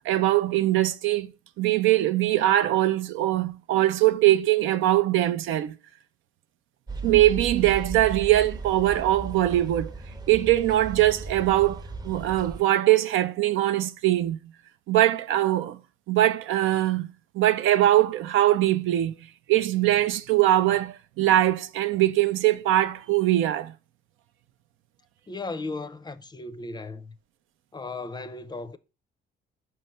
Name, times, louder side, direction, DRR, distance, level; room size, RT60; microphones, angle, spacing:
voice 1, 0.1-1.3 1.6-5.7 7.0-9.9 10.3-14.4 14.9-15.8 16.1-19.2 19.5-23.7, right 14 dB, 85° right, 0.5 m, -22 dB
sound 1, 6.9-12.6, right 3 dB, 20° right, 0.6 m, -36 dB
voice 2, 25.3-27.1 27.7-28.8, left 3 dB, 20° left, 0.5 m, -36 dB
5.5 x 3.1 x 5.5 m
cardioid pair, 90°, 20 cm